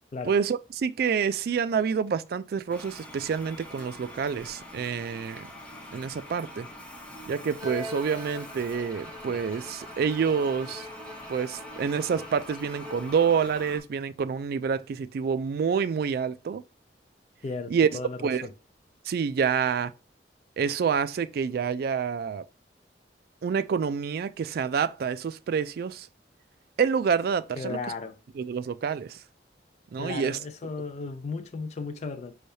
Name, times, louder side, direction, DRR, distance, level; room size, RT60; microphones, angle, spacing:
voice 1, 0.2-5.5 5.9-6.7 7.3-10.9 11.3-16.6 17.7-17.9 18.2-18.5 19.1-19.9 20.6-22.4 23.4-26.1 26.8-27.8 28.4-29.2 29.9-30.4, right 6 dB, 60° right, 0.3 m, -27 dB
Toilet flush, 2.7-13.8, left 1 dB, 5° left, 0.9 m, -44 dB
Bowed string instrument, 7.6-13.3, left 1 dB, 20° right, 0.7 m, -43 dB
voice 2, 17.4-18.5 27.6-28.2 30.0-32.4, left 3 dB, 40° left, 0.4 m, -35 dB
5.5 x 3.2 x 2.7 m
head